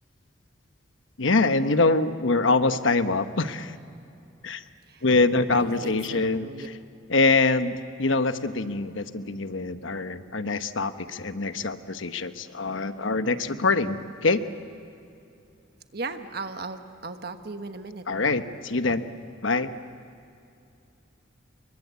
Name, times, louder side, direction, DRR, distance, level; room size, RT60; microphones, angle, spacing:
voice 1, 1.2-3.8 4.4-4.6 5.0-6.5 7.1-14.4 18.1-19.1 19.4-19.7, left 3 dB, 80° left, 10 dB, 1.1 m, -24 dB
voice 2, 5.5-6.7 15.9-18.0, right 3 dB, 50° right, 7 dB, 1.3 m, -37 dB
29.5 x 23.5 x 8.3 m, 2.6 s
head